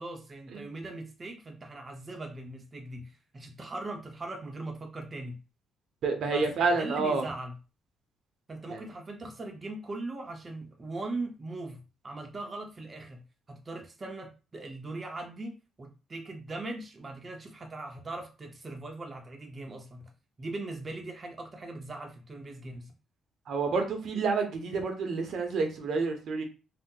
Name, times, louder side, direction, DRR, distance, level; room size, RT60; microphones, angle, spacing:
voice 1, 0.0-5.4 6.2-6.5 6.7-7.5 8.5-13.2 13.5-20.0 20.4-22.9, right 2 dB, 30° right, 2 dB, 0.6 m, -40 dB
voice 2, 6.0-7.3 8.7-8.8 23.5-26.4, right 4 dB, 70° right, 5 dB, 0.7 m, -29 dB
2.7 x 2.0 x 3.7 m, 0.32 s
cardioid pair, 90°, 0 cm